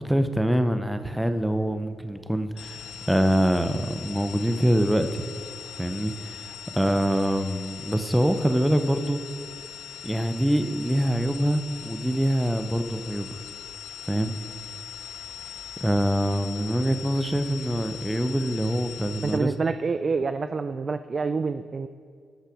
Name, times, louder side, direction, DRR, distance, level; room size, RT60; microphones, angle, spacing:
voice 1, 0.0-5.3 5.8-9.2 10.0-13.4 14.0-14.3 15.8-19.5, equal, 5° right, 8 dB, 0.7 m, -25 dB
sound 1, 2.6-19.4, left 8 dB, 85° left, 0.7 m, -41 dB
voice 2, 19.2-21.9, right 4 dB, 45° right, 10 dB, 0.3 m, -27 dB
13.5 x 5.6 x 5.0 m, 2.2 s
supercardioid pair, 60°, 0 cm